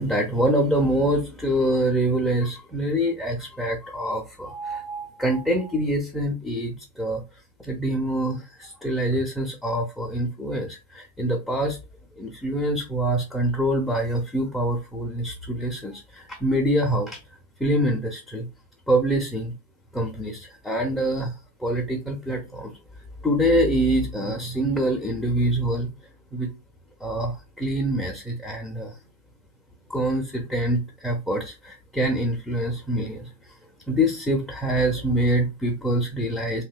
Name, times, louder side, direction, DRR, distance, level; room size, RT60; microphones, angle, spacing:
voice 1, 0.0-7.2 7.6-11.8 12.2-17.2 17.6-18.5 18.9-19.5 19.9-22.7 23.2-25.9 26.3-26.5 27.0-29.0 29.9-33.5 33.9-36.6, right 1 dB, 5° left, 0.4 m, -25 dB
2.7 x 2.1 x 2.3 m
figure-of-eight pair, 90°, 0 cm